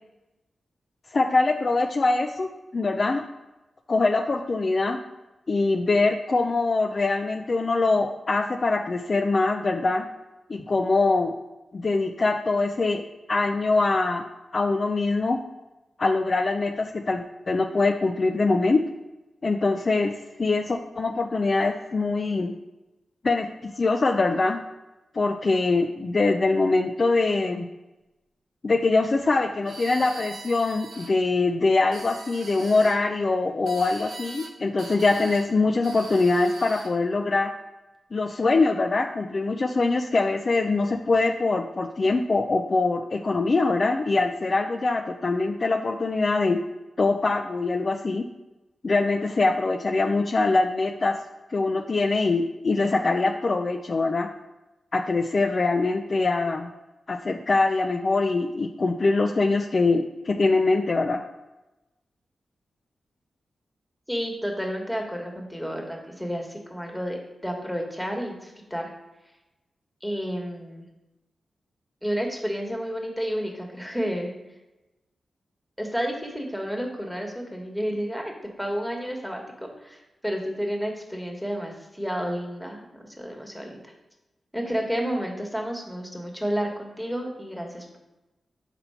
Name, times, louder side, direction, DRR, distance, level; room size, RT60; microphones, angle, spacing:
voice 1, 1.1-3.2 3.9-5.0 5.5-10.0 10.5-11.3 11.7-13.0 13.3-14.2 14.5-15.4 16.0-18.8 19.4-20.1 20.4-22.5 23.2-24.6 25.1-27.7 28.6-37.5 38.1-46.6 47.0-48.3 48.8-51.2 51.5-54.3 54.9-56.7 57.1-61.2, left 3 dB, 45° left, 5 dB, 0.4 m, -23 dB
sound 1, 29.6-31.1 31.8-33.0 33.7-34.5 34.8-35.5 35.8-36.9, right 3 dB, 75° right, 0.7 m, -42 dB
voice 2, 64.1-68.9 70.0-70.9 72.0-74.3 75.8-78.3 78.6-83.9 84.5-88.0, equal, ahead, 1 dB, 1.3 m, -31 dB
4.3 x 4.0 x 5.6 m, 1.0 s
cardioid pair, 70°, 0 cm